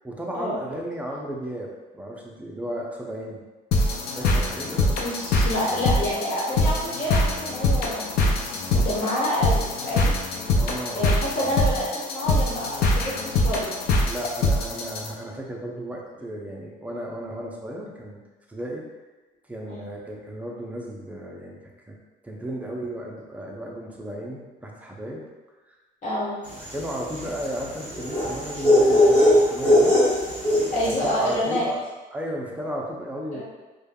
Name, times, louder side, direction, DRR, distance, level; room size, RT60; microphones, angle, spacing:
voice 1, 0.0-3.4 3.8-5.0 10.6-11.1 14.0-18.2 18.5-18.9 19.5-21.6 21.9-22.0 22.2-25.2 25.7-25.8 26.7-30.0 30.9-31.8 32.1-33.4, right 1 dB, 10° right, -2 dB, 0.5 m, -34 dB
sound 1, 3.7-15.1, left 2 dB, 70° left, 0.4 m, -24 dB
voice 2, 5.0-10.1 10.9-13.7 19.7-19.9 26.0-26.4 30.7-31.7 33.3-33.4, equal, 45° left, -7 dB, 1.2 m, -28 dB
sound 2, 26.6-31.1, left 1 dB, 10° left, 1.1 m, -20 dB
3.2 x 2.2 x 2.2 m, 1.2 s
cardioid pair, 110°, 17 cm